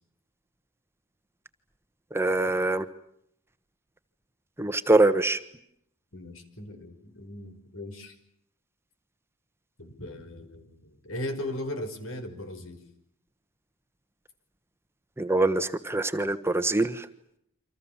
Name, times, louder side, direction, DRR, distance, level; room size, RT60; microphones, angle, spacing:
voice 1, 2.1-2.9 4.6-5.4 15.2-17.1, right 2 dB, 10° right, 9 dB, 1.3 m, -24 dB
voice 2, 6.1-8.1 9.8-12.8, left 1 dB, 75° left, 8 dB, 5.6 m, -38 dB
29.5 x 26.0 x 7.3 m, 0.73 s
head